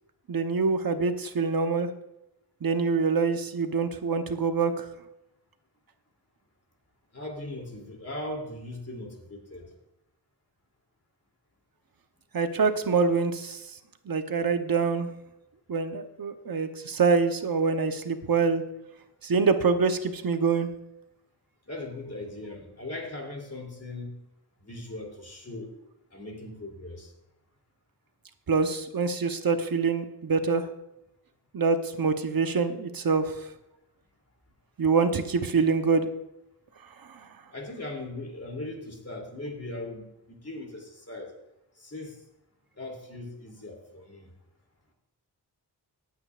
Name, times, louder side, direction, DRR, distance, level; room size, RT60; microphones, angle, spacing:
voice 1, 0.3-1.9 2.6-4.8 12.3-13.6 14.1-15.1 15.7-18.6 19.2-20.7 28.5-30.6 31.5-33.3 34.8-36.1 37.1-37.2, right 4 dB, 60° right, 7 dB, 1.0 m, -25 dB
voice 2, 7.1-9.7 21.7-24.2 24.6-25.7 26.1-27.1 37.5-41.3 41.8-42.2 42.8-44.3, left 2 dB, 35° left, 1 dB, 3.0 m, -39 dB
19.0 x 8.7 x 2.5 m, 0.88 s
wide cardioid pair, 85°, 40 cm